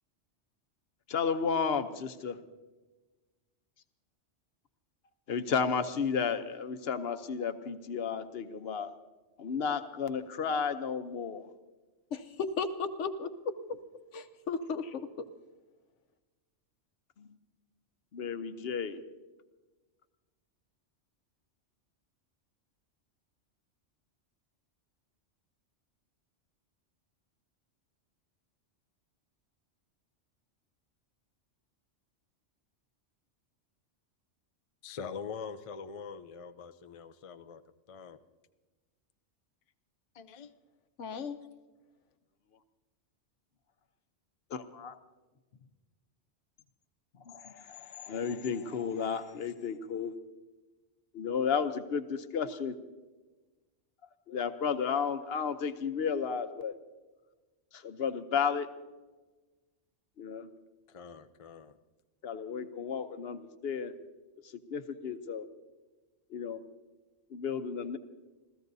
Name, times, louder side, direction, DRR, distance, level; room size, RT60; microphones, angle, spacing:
voice 1, 1.1-2.4 5.3-8.9 9.4-11.5 17.2-17.3 18.1-19.0 44.5-45.0 47.1-50.1 51.1-52.8 54.3-56.7 57.7-58.7 60.2-60.5 62.2-63.9 64.4-65.5 66.3-66.6 67.3-68.0, left 6 dB, 60° left, 10 dB, 1.0 m, -33 dB
voice 2, 12.1-13.3 14.1-15.2 41.0-41.4, left 5 dB, 75° left, 9 dB, 1.2 m, -35 dB
voice 3, 34.8-37.6 37.9-38.2 40.1-40.5 60.9-61.8, left 6 dB, 45° left, 10 dB, 0.5 m, -43 dB
27.0 x 15.5 x 2.7 m, 1.2 s
omnidirectional pair, 1.2 m